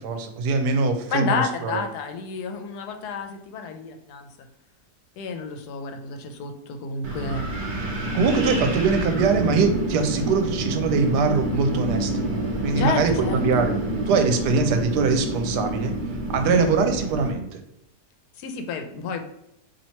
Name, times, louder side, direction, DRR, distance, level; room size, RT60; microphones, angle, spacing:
voice 1, 0.0-1.8 8.1-12.3 12.6-15.9 16.3-17.6, right 4 dB, 85° right, 6 dB, 1.2 m, -23 dB
voice 2, 1.1-4.3 5.2-7.4 12.8-13.4 16.5-16.8 18.4-19.2, left 5 dB, 75° left, 5 dB, 1.1 m, -30 dB
Wind, 7.0-17.3, right 1 dB, 60° right, 0.5 m, -28 dB
2.9 x 2.8 x 4.3 m, 0.80 s
omnidirectional pair, 1.8 m